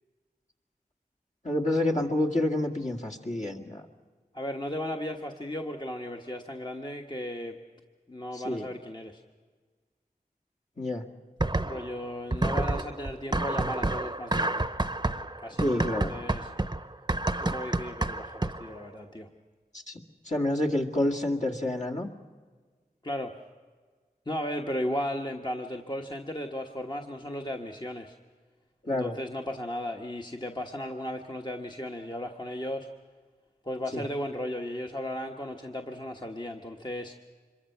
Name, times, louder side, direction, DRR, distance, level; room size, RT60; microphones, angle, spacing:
voice 1, 1.4-3.8 8.3-8.7 10.8-11.0 15.6-16.2 19.7-20.0 20.3-22.1 28.8-29.2 33.9-34.0, left 1 dB, 50° left, 1 dB, 2.0 m, -28 dB
voice 2, 4.3-7.6 8.1-9.2 11.6-14.7 15.4-16.5 17.3-19.3 23.0-23.3 24.3-28.1 28.9-32.9 33.6-37.1, left 1 dB, 30° left, 2 dB, 1.3 m, -35 dB
sound 1, 11.4-12.0 12.3-18.8, right 2 dB, 25° right, 0.8 m, -29 dB
26.0 x 22.5 x 5.8 m, 1.5 s
wide cardioid pair, 45°, 16 cm